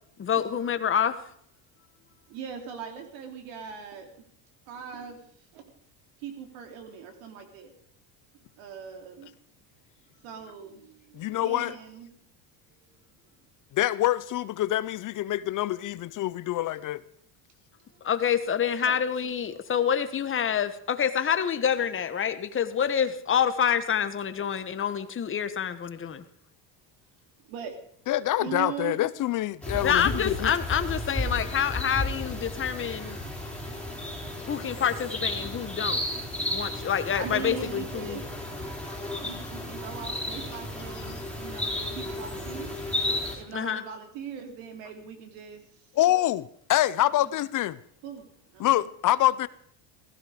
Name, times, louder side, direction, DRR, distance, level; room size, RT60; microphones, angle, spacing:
voice 1, 0.2-1.2 18.0-26.2 29.8-33.2 34.5-36.0 36.5-38.2 43.5-43.8, left 8 dB, 25° left, 1.2 m, -27 dB
voice 2, 2.3-4.3 4.7-5.3 5.5-5.8 6.2-7.7 8.6-9.3 10.2-12.1 12.7-13.0 17.9-18.1 18.8-19.0 19.5-19.9 21.0-21.1 27.5-27.8 28.4-29.0 37.1-38.2 39.2-42.7 43.3-45.9 47.1-47.3 48.0-48.3 48.5-48.8, right 7 dB, 80° right, 3.5 m, -40 dB
voice 3, 11.1-11.7 13.7-17.0 28.1-30.5 46.0-47.8 48.6-49.5, left 14 dB, 45° left, 0.6 m, -26 dB
sound 1, 29.6-43.3, left 1 dB, ahead, 4.3 m, -33 dB
16.0 x 15.0 x 5.0 m
cardioid pair, 125°, 45 cm